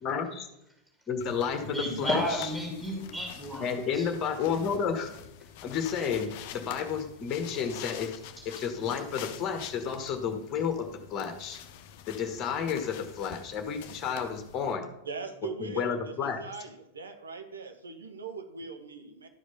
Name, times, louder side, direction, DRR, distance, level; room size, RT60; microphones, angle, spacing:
voice 1, 0.0-0.5 1.1-2.2 3.6-5.1 5.6-8.2 8.4-11.6 12.1-14.9 15.6-16.4, left 6 dB, 30° left, 6 dB, 1.3 m, -31 dB
sound 1, 1.2-14.7, left 9 dB, 50° left, 0.7 m, -47 dB
voice 2, 1.6-4.1 8.4-8.5, left 1 dB, 10° right, 0 dB, 2.3 m, -32 dB
voice 3, 15.0-19.3, right 5 dB, 75° right, 6 dB, 1.2 m, -41 dB
11.5 x 5.0 x 5.5 m, 0.86 s
figure-of-eight pair, 90°, 0 cm